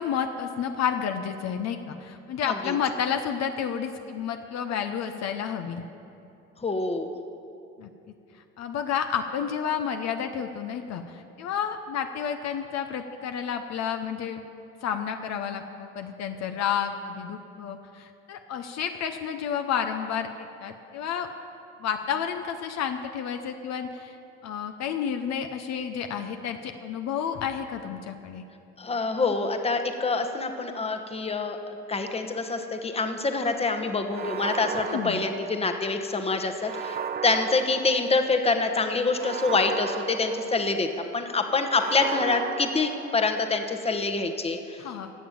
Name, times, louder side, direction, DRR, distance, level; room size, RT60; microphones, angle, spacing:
voice 1, 0.0-5.8 7.8-7.9 8.6-14.4 14.8-21.3 21.8-24.2 24.4-28.4 34.8-35.2 44.8-45.1, left 8 dB, 60° left, 6 dB, 0.9 m, -30 dB
voice 2, 6.6-7.1 28.8-44.8, left 3 dB, 20° left, 6 dB, 1.1 m, -26 dB
sound 1, 34.1-36.0 36.6-38.4 39.1-41.0 41.7-43.6, right 7 dB, 30° right, 0.5 m, -35 dB
17.0 x 6.9 x 7.3 m, 2.7 s
supercardioid pair, 90°, 31 cm